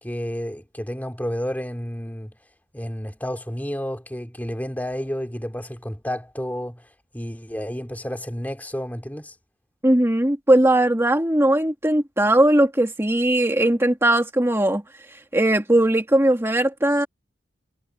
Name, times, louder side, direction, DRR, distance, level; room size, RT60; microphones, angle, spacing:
voice 1, 0.0-2.4 2.7-6.8 7.1-9.3, equal, 10° left, 2.7 m, -31 dB
voice 2, 9.8-14.8 15.3-17.1, right 1 dB, 15° right, 2.1 m, -19 dB
head